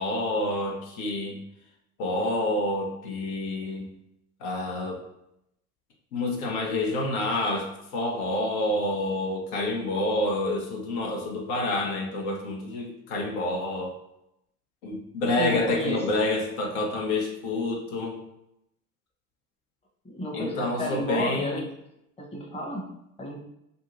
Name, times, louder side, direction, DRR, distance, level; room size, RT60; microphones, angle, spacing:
voice 1, 0.0-1.4 2.0-3.9 4.4-5.0 6.1-13.9 14.8-18.2 20.3-21.6, left 1 dB, 70° left, 0 dB, 0.8 m, -28 dB
voice 2, 15.4-16.0 20.0-21.7 22.2-22.9 23.2-23.4, left 1 dB, 15° left, -1 dB, 0.8 m, -32 dB
2.6 x 2.5 x 2.9 m, 0.82 s
hypercardioid pair, 70°, 44 cm